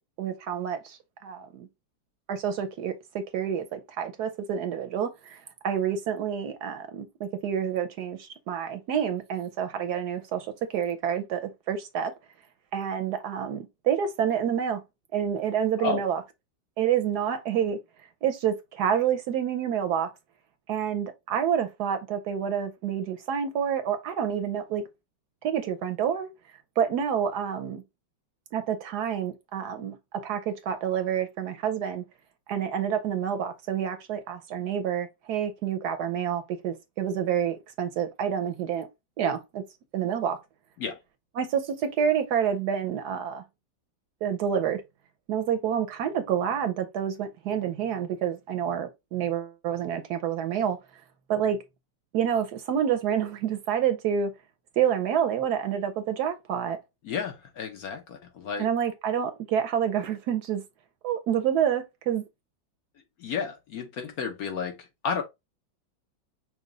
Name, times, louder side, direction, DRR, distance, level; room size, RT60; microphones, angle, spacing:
voice 1, 0.2-1.7 2.3-12.1 12.7-14.8 15.1-16.2 16.8-17.8 18.2-20.1 20.7-24.8 25.4-26.3 26.8-27.8 28.5-32.0 32.5-38.9 39.2-39.6 39.9-40.4 41.4-43.4 44.2-44.8 45.3-50.8 51.3-51.6 52.1-54.3 54.8-56.8 58.6-60.6 61.0-62.2, right 8 dB, 70° right, 1.1 m, -28 dB
voice 2, 57.1-58.7 63.2-64.8 65.0-65.2, left 5 dB, 60° left, 1.1 m, -31 dB
6.0 x 2.3 x 3.8 m
omnidirectional pair, 2.0 m